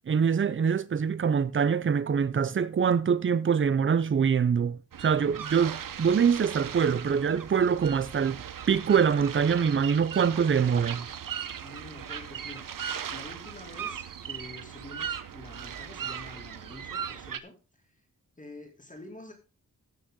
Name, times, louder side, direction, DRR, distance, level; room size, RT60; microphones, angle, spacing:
voice 1, 0.1-11.1, right 7 dB, 35° right, 0.6 m, -24 dB
sound 1, 4.9-17.4, right 8 dB, 70° right, 0.8 m, -38 dB
voice 2, 11.6-12.7 13.1-17.5 18.4-19.3, left 2 dB, 20° left, 2.4 m, -47 dB
16.0 x 6.4 x 3.8 m
wide cardioid pair, 155°, 34 cm